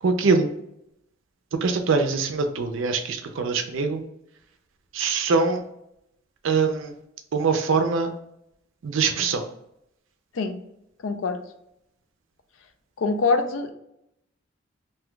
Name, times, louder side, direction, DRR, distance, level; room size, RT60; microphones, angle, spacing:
voice 1, 0.0-0.5 1.5-4.0 4.9-5.6 6.4-6.9 7.3-8.1 8.8-9.5, right 4 dB, 70° right, 6 dB, 0.4 m, -23 dB
voice 2, 11.0-11.4 13.0-13.7, left 4 dB, 75° left, 8 dB, 0.4 m, -24 dB
2.6 x 2.2 x 3.7 m, 0.79 s
head